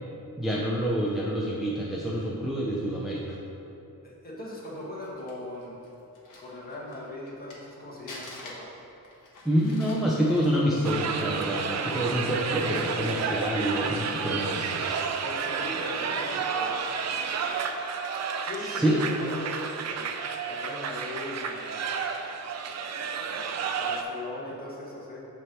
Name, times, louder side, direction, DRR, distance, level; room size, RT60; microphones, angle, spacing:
voice 1, 0.4-3.4 9.4-15.0 18.6-19.0, equal, ahead, -5 dB, 0.5 m, -27 dB
voice 2, 4.0-5.8 6.4-8.7 11.8-12.0 15.2-16.8 18.4-20.1 20.5-21.8 23.8-25.3, left 2 dB, 25° left, -5 dB, 1.4 m, -39 dB
Crumpling crinkling, 4.7-7.7 8.1-12.2 12.5-12.6 13.2-14.1 14.7-14.9, left 2 dB, 60° left, 1.3 m, -48 dB
sound 1, 10.8-24.0, right 6 dB, 50° right, 0.5 m, -31 dB
7.1 x 3.3 x 6.1 m, 2.9 s
wide cardioid pair, 140°, 35 cm